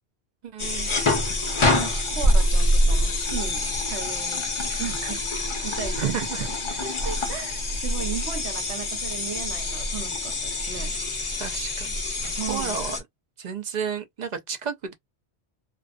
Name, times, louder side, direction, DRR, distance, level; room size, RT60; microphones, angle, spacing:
voice 1, 0.4-1.0 6.0-6.5 11.4-12.0 12.5-13.0 13.4-14.9, right 7 dB, 55° right, 0.5 m, -31 dB
sound 1, 0.6-13.0, left 1 dB, 35° left, 0.5 m, -25 dB
voice 2, 1.8-4.5 4.8-5.3 5.6-6.1 6.4-6.5 6.8-10.9 12.4-12.8, right 7 dB, 85° right, 1.1 m, -36 dB
2.4 x 2.2 x 2.3 m
omnidirectional pair, 1.1 m